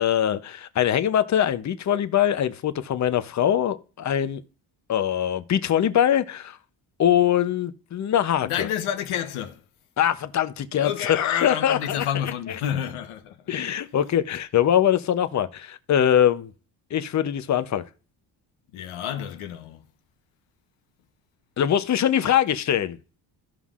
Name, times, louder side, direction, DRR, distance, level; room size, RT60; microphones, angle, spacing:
voice 1, 0.0-4.4 4.9-6.6 7.0-8.7 10.0-12.1 13.5-16.5 16.9-17.8 21.6-23.0, left 10 dB, 35° left, 0.7 m, -22 dB
voice 2, 8.4-9.6 10.8-13.5 18.7-19.8, left 9 dB, 85° left, 1.1 m, -29 dB
15.5 x 5.5 x 2.4 m
cardioid pair, 130°, 48 cm